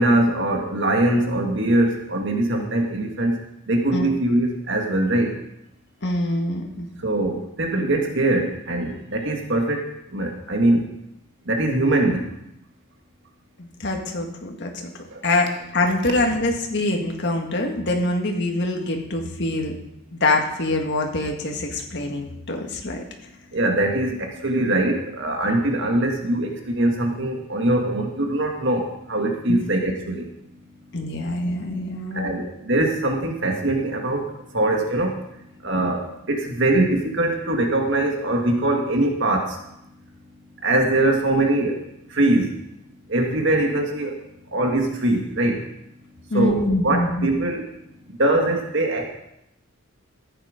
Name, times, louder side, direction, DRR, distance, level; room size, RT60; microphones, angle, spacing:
voice 1, 0.0-3.4 3.7-5.3 7.0-10.9 11.5-12.3 15.1-15.2 23.5-30.3 32.1-34.3 34.5-35.2 35.6-39.6 40.6-41.8 42.1-42.5 43.1-44.2 44.5-45.6 46.3-47.6 48.2-49.1, right 1 dB, 60° right, 2 dB, 1.8 m, -22 dB
voice 2, 6.0-6.9 13.6-14.9 15.2-19.8 20.1-23.0 29.5-29.6 30.9-32.4 46.3-47.3, left 2 dB, 55° left, 2 dB, 1.8 m, -24 dB
14.0 x 8.2 x 5.1 m, 0.82 s
head